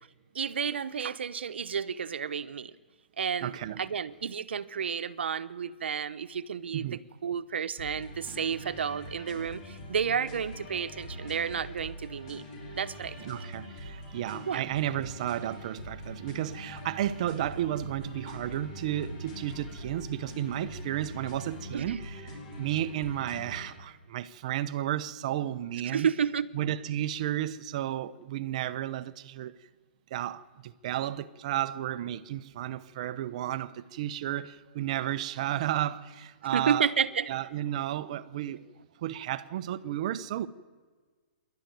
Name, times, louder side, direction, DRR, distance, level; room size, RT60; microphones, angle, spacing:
voice 1, 0.3-2.7 3.2-12.5 12.7-13.1 14.5-14.6 21.7-22.0 25.9-26.5 36.5-37.3, right 7 dB, 85° right, 1.0 m, -31 dB
voice 2, 3.4-3.8 6.7-7.0 13.2-26.1 26.5-29.5 30.1-36.9 37.3-38.7 39.0-40.5, right 12 dB, 40° right, 0.7 m, -33 dB
sound 1, 7.8-23.8, equal, 35° left, 6.2 m, -43 dB
27.0 x 11.5 x 9.3 m
hypercardioid pair, 165°, 6 cm